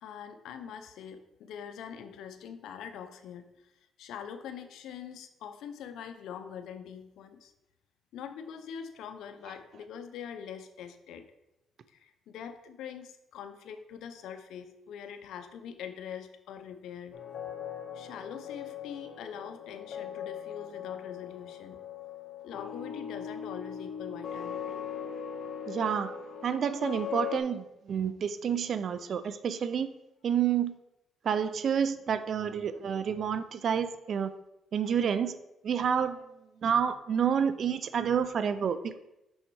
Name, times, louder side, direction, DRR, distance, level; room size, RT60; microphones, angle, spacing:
voice 1, 0.0-3.7 4.0-7.5 8.1-11.3 11.9-17.2 17.9-21.8 22.4-24.8, left 8 dB, 80° left, 8 dB, 0.6 m, -43 dB
sound 1, 17.1-27.4, left 8 dB, 60° left, 1.3 m, -40 dB
voice 2, 25.7-26.1 26.4-29.9 30.2-30.7 31.2-34.3 34.7-35.3 35.6-36.2 36.6-39.0, right 7 dB, 60° right, 13 dB, 0.5 m, -29 dB
6.3 x 5.6 x 4.7 m, 0.90 s
cardioid pair, 90°, 0 cm